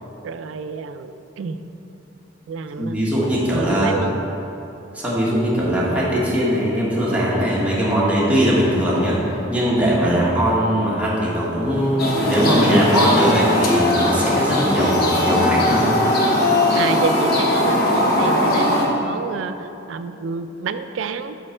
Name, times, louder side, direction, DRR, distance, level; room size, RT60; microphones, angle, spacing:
voice 1, 0.2-1.6 2.5-3.0 3.5-4.2 10.0-10.4 16.7-21.4, right 5 dB, 85° right, 10 dB, 0.3 m, -29 dB
voice 2, 2.8-3.9 4.9-9.2 9.5-15.9, equal, 10° right, -7 dB, 1.3 m, -20 dB
sound 1, 12.0-18.8, left 1 dB, 55° left, 1.0 m, -19 dB
6.4 x 5.2 x 4.4 m, 3.0 s
head